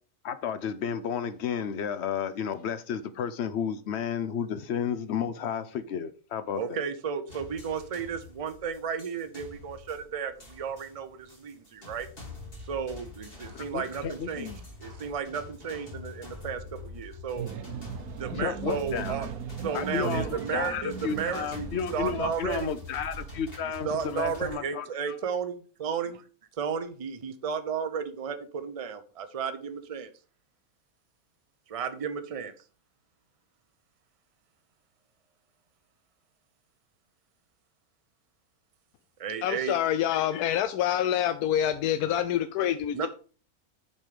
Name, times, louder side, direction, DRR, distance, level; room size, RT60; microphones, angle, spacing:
voice 1, 0.2-6.6 13.5-14.6 18.3-19.2 19.7-25.1, left 7 dB, 55° left, 0.8 m, -32 dB
voice 2, 6.5-12.1 12.7-14.5 14.8-17.5 18.2-19.3 19.6-22.7 23.6-26.2 26.6-30.1 31.7-32.5 39.2-39.8 42.9-43.1, right 6 dB, 35° right, 0.5 m, -33 dB
sound 1, 7.3-24.5, left 3 dB, 40° left, 3.2 m, -45 dB
sound 2, 17.3-22.3, right 9 dB, 75° right, 1.2 m, -38 dB
voice 3, 39.4-43.1, left 10 dB, 90° left, 1.1 m, -26 dB
7.1 x 5.4 x 5.0 m
omnidirectional pair, 1.6 m